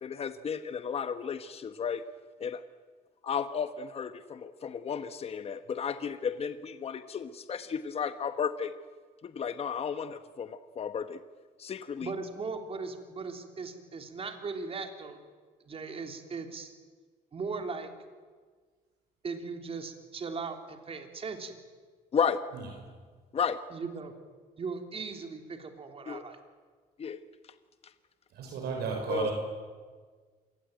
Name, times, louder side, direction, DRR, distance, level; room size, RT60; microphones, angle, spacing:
voice 1, 0.0-2.0 2.4-2.6 3.2-8.7 9.2-11.2 11.6-12.1 22.1-22.4 23.3-23.6 26.1-26.2 27.0-27.2 29.1-29.3, left 7 dB, 35° left, 11 dB, 1.1 m, -33 dB
voice 2, 12.0-15.2 15.7-16.7 17.3-17.9 19.2-21.6 23.7-24.1 24.6-26.4, right 4 dB, 35° right, 5 dB, 3.4 m, -38 dB
voice 3, 28.3-29.3, right 5 dB, 70° right, 1 dB, 6.0 m, -33 dB
26.5 x 21.0 x 9.1 m, 1.5 s
cardioid pair, 110°, 17 cm